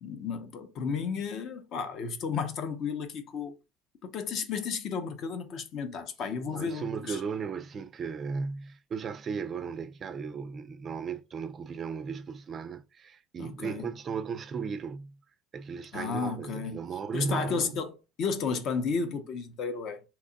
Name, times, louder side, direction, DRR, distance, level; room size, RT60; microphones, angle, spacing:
voice 1, 0.0-3.5 4.0-7.2 13.4-13.9 15.9-16.8 17.1-20.0, left 5 dB, 50° left, 0.6 m, -33 dB
voice 2, 6.5-15.2 15.5-17.8, right 5 dB, 30° right, 0.3 m, -36 dB
2.8 x 2.3 x 3.8 m
cardioid pair, 140°, 0 cm